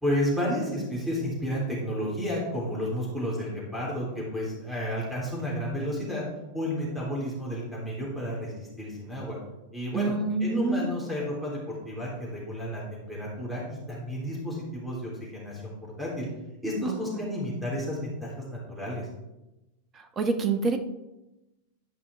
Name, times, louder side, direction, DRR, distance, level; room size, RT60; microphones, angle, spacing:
voice 1, 0.0-6.3 6.5-9.4 9.7-10.1 10.4-15.7 16.0-16.3 16.6-19.1, equal, 5° right, -5 dB, 3.5 m, -31 dB
voice 2, 9.9-10.9 16.9-17.2 19.9-20.8, right 4 dB, 25° right, 7 dB, 1.1 m, -27 dB
12.5 x 5.5 x 3.6 m, 0.97 s
figure-of-eight pair, 90°, 0 cm